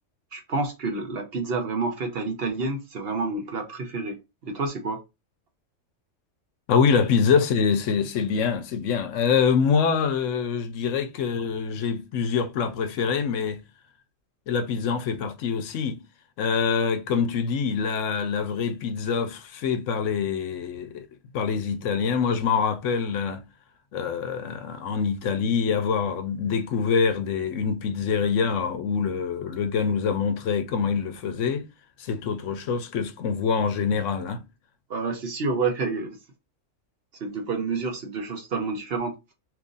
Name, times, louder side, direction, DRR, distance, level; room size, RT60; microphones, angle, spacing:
voice 1, 0.3-4.2 4.4-5.0 34.9-36.1 37.2-39.1, right 3 dB, 55° right, 1.0 m, -29 dB
voice 2, 6.7-13.6 14.5-16.0 16.4-21.1 21.3-23.4 23.9-31.7 32.0-34.4, left 6 dB, 75° left, 1.0 m, -25 dB
3.0 x 2.5 x 3.8 m
omnidirectional pair, 1.3 m